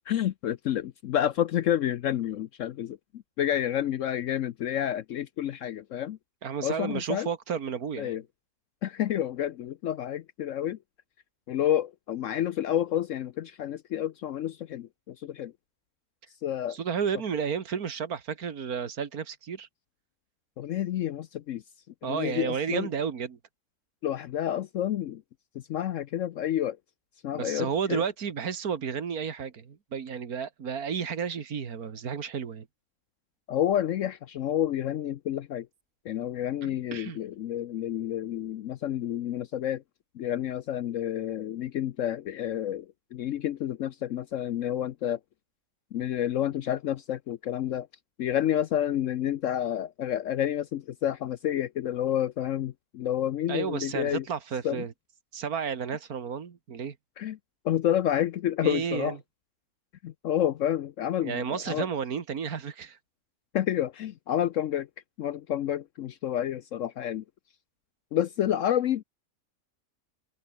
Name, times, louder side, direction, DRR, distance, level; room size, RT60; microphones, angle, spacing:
voice 1, 0.1-3.0 3.4-6.2 6.6-7.3 8.0-8.2 8.8-10.8 11.5-15.5 16.4-16.8 20.6-21.6 22.0-22.9 24.0-25.2 25.5-26.8 27.2-28.0 33.5-35.7 36.0-39.8 40.1-42.9 43.1-45.2 45.9-47.9 48.2-54.2 54.6-54.8 57.2-57.4 57.6-59.2 60.0-61.9 63.5-64.9 65.2-67.2 68.1-69.0, left 11 dB, 65° left, 0.9 m, -29 dB
voice 2, 6.4-8.2 16.7-19.7 22.0-23.4 27.3-32.7 36.6-37.2 53.5-54.9 55.3-57.0 58.6-59.2 61.2-63.0, right 7 dB, 80° right, 2.2 m, -32 dB
omnidirectional pair, 1.6 m